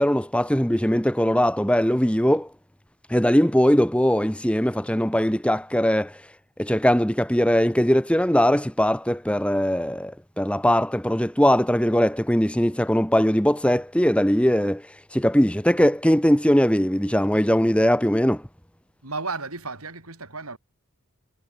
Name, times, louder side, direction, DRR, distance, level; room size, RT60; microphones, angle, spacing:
voice 1, 0.0-2.5 3.1-6.1 6.6-14.8 15.1-18.4, equal, 5° left, 1.8 m, -20 dB
voice 2, 19.0-20.6, right 3 dB, 85° right, 7.5 m, -33 dB
head